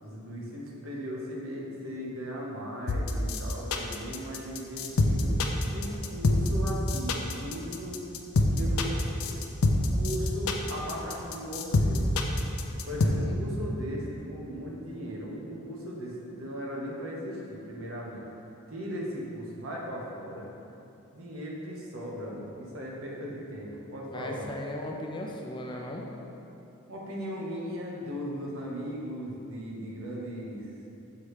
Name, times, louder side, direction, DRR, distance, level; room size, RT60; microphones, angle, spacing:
voice 1, 0.0-5.3 5.7-8.0 8.5-9.4 9.9-12.1 12.8-18.2 18.7-20.5 21.1-24.5 26.9-30.7, equal, 70° right, -3 dB, 1.1 m, -37 dB
sound 1, 2.9-13.1, left 3 dB, 80° left, 0.5 m, -25 dB
voice 2, 13.0-13.4 24.1-26.1, left 1 dB, 20° left, 0 dB, 0.4 m, -37 dB
7.0 x 3.2 x 4.8 m, 2.9 s
head